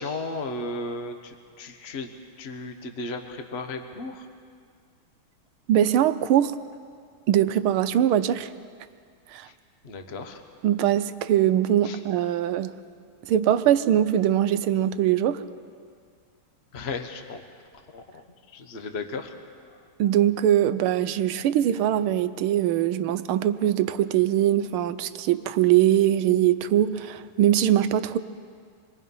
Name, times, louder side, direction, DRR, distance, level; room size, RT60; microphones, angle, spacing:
voice 1, 0.0-2.1 2.4-4.3 9.8-10.4 11.8-12.0 16.7-17.4 17.9-18.2 18.5-19.3, left 3 dB, 35° left, 6 dB, 1.3 m, -35 dB
voice 2, 5.7-6.5 7.3-8.5 9.3-9.5 10.6-12.7 13.3-15.4 20.0-28.2, right 11 dB, 75° right, 11 dB, 1.6 m, -22 dB
26.5 x 21.5 x 5.5 m, 2.1 s
omnidirectional pair, 2.4 m